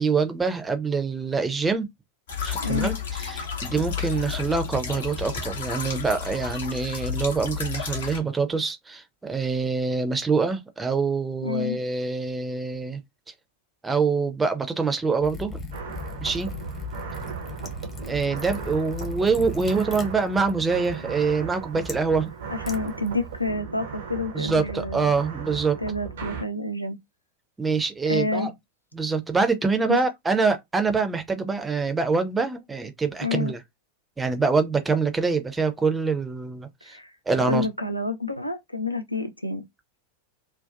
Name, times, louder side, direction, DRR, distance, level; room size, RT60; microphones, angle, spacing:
voice 1, 0.0-1.9 2.4-13.0 13.8-15.6 16.2-16.5 18.1-22.3 24.3-25.8 27.6-28.5 28.9-33.6 34.2-37.0 37.3-37.7, right 4 dB, 10° right, 0.5 m, -25 dB
sound 1, 2.3-8.2, left 7 dB, 60° left, 0.7 m, -32 dB
voice 2, 2.6-3.0 11.4-11.8 22.5-25.1 25.8-27.0 28.1-28.5 29.9-30.0 33.2-33.5 36.8-37.1 37.4-39.6, left 2 dB, 90° left, 0.4 m, -28 dB
Liquid, 15.2-23.5, left 3 dB, 20° left, 0.8 m, -39 dB
sound 2, 15.7-26.4, right 6 dB, 60° right, 0.5 m, -37 dB
2.6 x 2.1 x 2.3 m
figure-of-eight pair, 90°, 0 cm